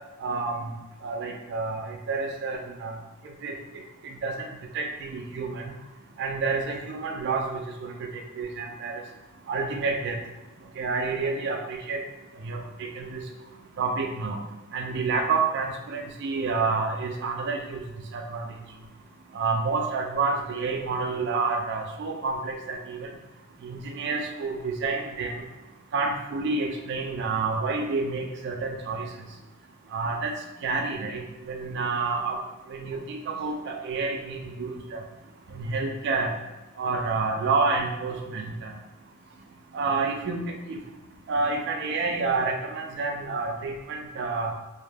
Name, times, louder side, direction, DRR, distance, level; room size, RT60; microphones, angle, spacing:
voice 1, 0.2-0.5 1.0-2.9 3.4-3.5 4.2-4.3 4.7-5.6 6.2-8.1 8.4-9.0 9.5-10.2 10.8-12.0 12.4-12.6 13.0-13.2 13.8-14.4 14.7-17.8 18.1-18.4 19.3-23.1 23.6-25.3 25.9-29.0 29.9-30.3 30.6-32.4 32.7-35.0 35.5-36.3 36.8-38.7 39.7-40.8 41.3-44.5, right 4 dB, 50° right, 2 dB, 0.3 m, -29 dB
2.1 x 2.0 x 3.2 m, 1.1 s
head